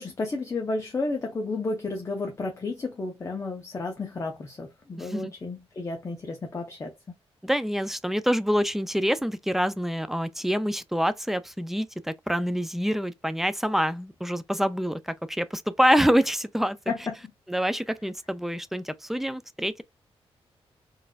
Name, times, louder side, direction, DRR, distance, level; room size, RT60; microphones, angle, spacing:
voice 1, 0.0-7.1 16.9-17.1, left 3 dB, 30° left, 0.6 m, -32 dB
voice 2, 5.0-5.3 7.4-16.8 17.5-19.8, equal, 5° right, 0.3 m, -26 dB
4.0 x 2.5 x 2.3 m
wide cardioid pair, 140°, 10 cm